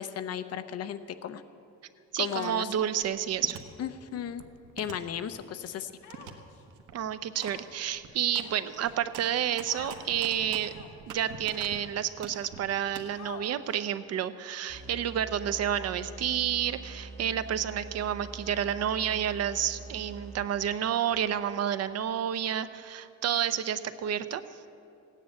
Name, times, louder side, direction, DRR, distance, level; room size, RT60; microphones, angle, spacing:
voice 1, 0.0-1.4 2.2-2.7 3.8-4.4 4.8-5.9, left 9 dB, 55° left, 11 dB, 0.8 m, -35 dB
voice 2, 2.1-3.6 6.9-10.7 11.1-24.4, right 9 dB, 55° right, 12 dB, 0.7 m, -30 dB
sound 1, 3.0-3.6 4.1-5.7 6.1-6.3 6.7-6.9 7.4-7.6 7.8-11.8 12.2-13.0, right 7 dB, 85° right, 1.4 m, -44 dB
Human voice, 6.0-6.6 7.3-7.8 8.4-9.0 9.7-10.0 10.7-11.1 11.8-11.9 13.2-13.8, left 7 dB, 80° left, 1.8 m, -47 dB
sound 2, 14.7-20.7, right 3 dB, ahead, 4.9 m, -45 dB
16.0 x 10.0 x 8.5 m, 2.5 s
cardioid pair, 150°, 30 cm